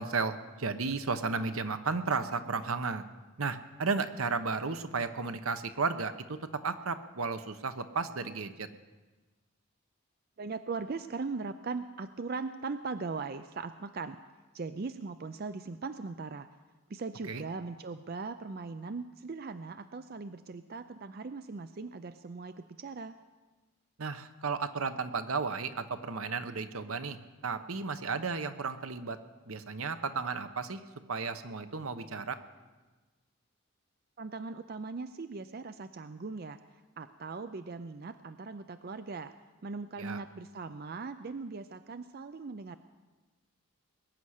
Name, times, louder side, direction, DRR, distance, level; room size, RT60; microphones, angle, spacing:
voice 1, 0.0-3.0 3.4-8.7 17.3-17.4 24.0-27.2 27.4-29.2 29.5-30.8 31.1-32.4 40.0-40.2, right 4 dB, 80° right, 10 dB, 1.0 m, -33 dB
voice 2, 10.4-14.2 14.5-16.5 16.9-23.2 34.2-36.6 37.0-39.3 39.6-42.8, right 4 dB, 45° right, 11 dB, 0.4 m, -39 dB
21.0 x 9.7 x 6.5 m, 1.2 s
head